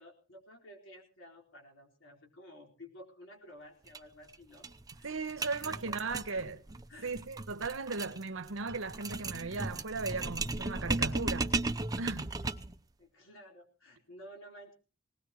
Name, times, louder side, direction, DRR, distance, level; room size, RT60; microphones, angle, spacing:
voice 1, 0.0-4.7 5.0-6.6 6.9-7.1 9.5-9.7 13.0-14.7, equal, 75° left, 4.4 m, -53 dB
sound 1, 3.9-4.0 4.3-4.4 4.6-12.8, right 3 dB, 20° right, 0.6 m, -36 dB
voice 2, 5.0-6.6 7.0-11.5 12.0-12.3, right 4 dB, 80° right, 1.1 m, -37 dB
19.5 x 19.0 x 3.0 m
head